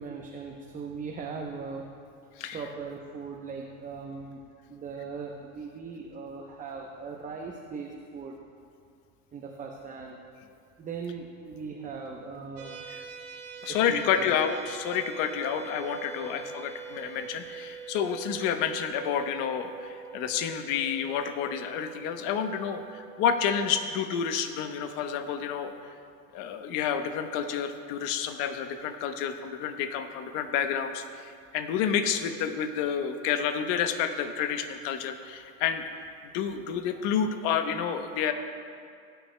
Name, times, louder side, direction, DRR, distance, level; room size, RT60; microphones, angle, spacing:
voice 1, 0.0-1.9 2.5-4.4 4.7-8.4 9.3-10.2 10.8-12.8 13.9-14.4 16.2-16.4, right 5 dB, 20° right, 0 dB, 0.8 m, -39 dB
sound 1, 12.6-23.7, right 6 dB, 50° right, 1.6 m, -44 dB
voice 2, 13.6-25.9 26.3-35.8 36.3-38.3, left 8 dB, 50° left, 8 dB, 1.0 m, -29 dB
18.5 x 9.1 x 2.2 m, 2.4 s
hypercardioid pair, 110°, 41 cm